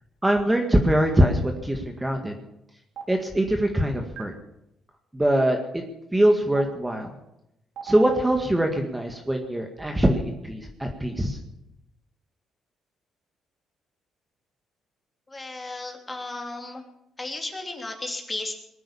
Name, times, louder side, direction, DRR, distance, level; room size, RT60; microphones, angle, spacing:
voice 1, 0.2-2.3 3.1-4.3 5.1-5.8 6.1-7.1 7.8-11.4, right 1 dB, 10° right, 3 dB, 1.9 m, -23 dB
Stream, 3.0-3.1 4.2-4.3 5.4-5.5 6.6-6.7 7.8-8.1, right 8 dB, 80° right, 3.2 m, -34 dB
voice 2, 15.3-16.8 17.2-18.5, left 2 dB, 20° left, 3 dB, 3.0 m, -34 dB
21.0 x 9.2 x 7.2 m, 0.85 s
cardioid pair, 90°, 0 cm